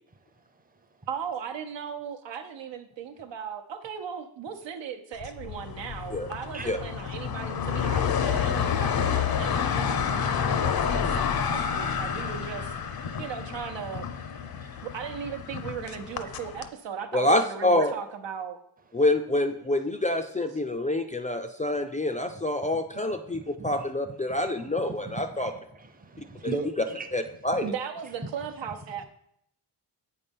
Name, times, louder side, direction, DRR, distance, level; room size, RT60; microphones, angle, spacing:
voice 1, 1.1-14.3 14.8-18.6 27.6-29.1, right 7 dB, 85° right, 7 dB, 0.9 m, -37 dB
sound 1, 5.2-16.7, left 7 dB, 60° left, 0.6 m, -29 dB
voice 2, 17.1-17.9 18.9-25.5 27.1-27.7, left 1 dB, 20° left, 6 dB, 0.3 m, -26 dB
voice 3, 23.3-23.7 26.1-27.1, right 2 dB, 20° right, 7 dB, 0.6 m, -35 dB
8.2 x 4.2 x 5.3 m, 0.72 s
wide cardioid pair, 135°, 43 cm